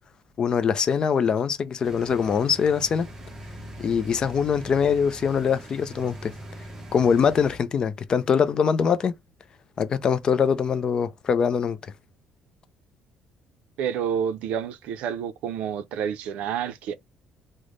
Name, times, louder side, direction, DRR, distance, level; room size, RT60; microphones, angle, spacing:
voice 1, 0.4-3.1 3.8-6.3 6.9-9.1 9.8-11.8, left 6 dB, 35° left, 0.4 m, -23 dB
sound 1, 1.8-7.6, equal, 20° right, 0.7 m, -42 dB
voice 2, 13.8-16.9, right 8 dB, 75° right, 0.4 m, -29 dB
3.2 x 2.1 x 3.7 m
cardioid pair, 145°, 2 cm